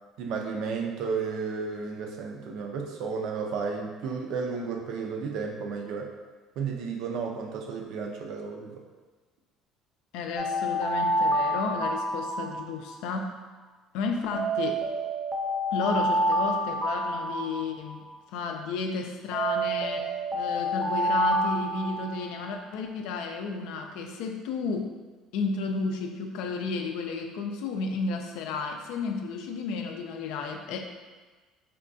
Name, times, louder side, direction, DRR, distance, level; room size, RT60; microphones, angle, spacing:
voice 1, 0.2-6.1 6.6-8.8, right 5 dB, 70° right, 2 dB, 0.4 m, -33 dB
voice 2, 10.1-13.4 13.9-14.8 15.7-18.1 18.3-24.9 25.3-30.8, left 4 dB, 80° left, 4 dB, 0.3 m, -32 dB
Alarm, 10.4-13.0 14.3-18.0 19.3-22.5, right 1 dB, 15° right, 0.5 m, -28 dB
3.5 x 2.3 x 2.5 m, 1.3 s
supercardioid pair, 90°, 0 cm